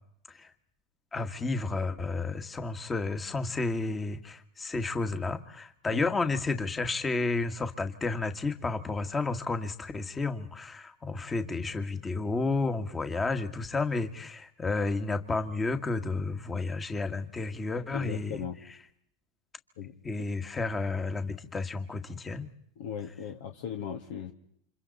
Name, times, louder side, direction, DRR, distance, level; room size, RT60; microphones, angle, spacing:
voice 1, 1.1-18.8 20.0-22.5, left 3 dB, 15° left, 8 dB, 1.8 m, -31 dB
voice 2, 17.9-18.6 19.8-20.2 22.8-24.3, left 8 dB, 70° left, 4 dB, 2.1 m, -38 dB
29.5 x 26.5 x 4.2 m, 0.72 s
hypercardioid pair, 110°, 0 cm